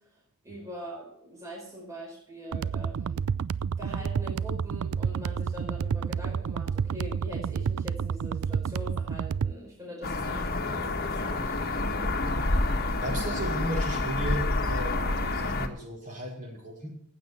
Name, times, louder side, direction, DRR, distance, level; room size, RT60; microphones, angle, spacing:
voice 1, 0.4-3.2 3.8-11.5, equal, 15° right, -3 dB, 4.7 m, -42 dB
sound 1, 2.5-9.5, right 6 dB, 70° right, 0.4 m, -30 dB
sound 2, 10.0-15.7, left 2 dB, 45° left, 1.5 m, -28 dB
voice 2, 13.0-16.9, equal, 35° right, -2 dB, 5.2 m, -35 dB
15.5 x 8.5 x 5.9 m, 0.68 s
head